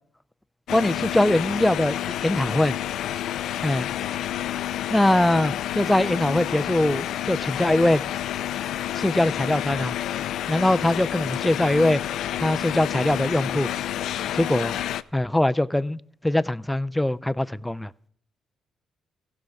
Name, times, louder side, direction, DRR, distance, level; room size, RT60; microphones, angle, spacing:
sound 1, 0.7-15.0, left 12 dB, 75° left, 0.3 m, -29 dB
voice 1, 0.7-2.7 3.6-3.9 4.9-8.0 9.0-9.9 10.5-12.0 12.4-13.7 14.3-14.8 15.1-17.9, left 1 dB, 5° left, 0.4 m, -22 dB
15.5 x 6.4 x 4.7 m
cardioid pair, 90°, 0 cm